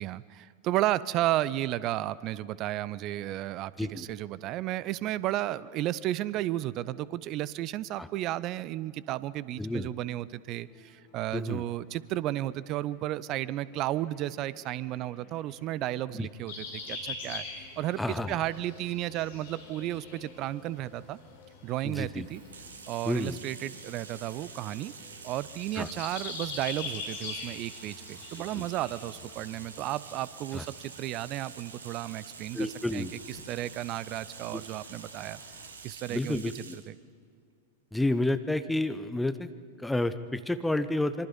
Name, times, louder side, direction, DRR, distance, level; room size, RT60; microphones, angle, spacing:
voice 1, 0.0-17.5 17.8-21.2 21.6-22.4 22.9-24.9 25.2-32.7 32.9-35.4 35.8-36.4 36.9-37.0, right 14 dB, 40° right, 19 dB, 0.6 m, -33 dB
voice 2, 9.6-9.9 11.3-11.6 16.1-16.3 18.0-18.4 21.8-22.3 23.0-23.4 25.7-25.9 28.5-28.7 30.5-30.6 32.5-33.1 34.5-34.6 36.1-36.8 37.9-39.5 39.8-41.3, left 1 dB, 5° left, 10 dB, 0.9 m, -30 dB
sound 1, 10.6-29.9, left 7 dB, 35° left, 1.9 m, -58 dB
sound 2, 16.5-35.7, left 4 dB, 60° left, 5.7 m, -45 dB
Bathtub (filling or washing), 22.2-36.9, right 5 dB, 70° right, 1.6 m, -48 dB
25.5 x 23.5 x 5.4 m, 2.2 s
figure-of-eight pair, 90°, 0 cm